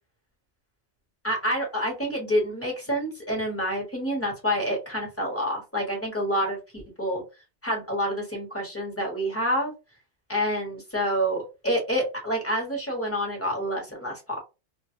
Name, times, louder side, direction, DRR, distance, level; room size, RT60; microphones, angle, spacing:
voice 1, 1.2-7.2 7.6-9.7 10.3-14.2, equal, 10° left, 0 dB, 0.9 m, -28 dB
2.5 x 2.4 x 2.6 m, 0.27 s
omnidirectional pair, 1.4 m